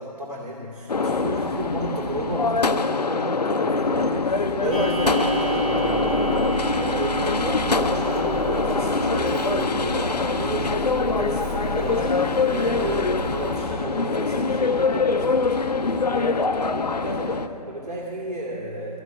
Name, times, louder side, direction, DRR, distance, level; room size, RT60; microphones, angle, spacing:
voice 1, 0.0-19.0, right 1 dB, 80° right, -3 dB, 2.3 m, -32 dB
sound 1, 0.9-17.5, left 4 dB, 75° left, 0.6 m, -24 dB
Clock, 4.7-13.7, right 2 dB, 5° left, 0.3 m, -30 dB
14.5 x 5.3 x 9.5 m, 2.8 s
figure-of-eight pair, 140°, 21 cm